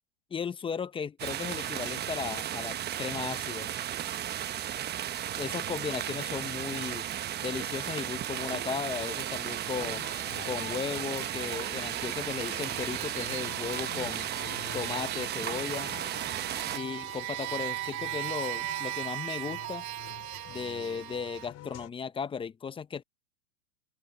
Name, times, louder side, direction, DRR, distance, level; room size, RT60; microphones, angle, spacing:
voice 1, 0.3-3.7 5.4-7.1 7.4-10.0 10.5-14.3 14.7-15.9 16.7-19.9 20.5-23.0, left 6 dB, 10° left, 0.8 m, -36 dB
sound 1, 1.2-16.8, right 11 dB, 20° right, 1.2 m, -35 dB
sound 2, 8.3-21.5, right 17 dB, 60° right, 3.1 m, -39 dB
sound 3, 9.6-21.9, left 14 dB, 30° left, 4.6 m, -48 dB
open air
hypercardioid pair, 125°, 48 cm